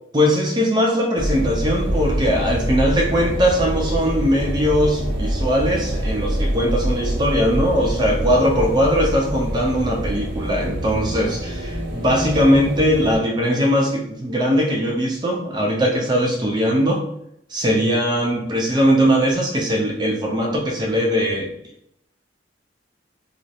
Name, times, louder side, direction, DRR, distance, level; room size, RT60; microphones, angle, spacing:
voice 1, 0.1-17.0 17.5-21.5, equal, 25° right, -1 dB, 0.5 m, -20 dB
sound 1, 1.1-13.2, right 1 dB, 65° right, 0.6 m, -25 dB
2.4 x 2.0 x 2.8 m, 0.76 s
head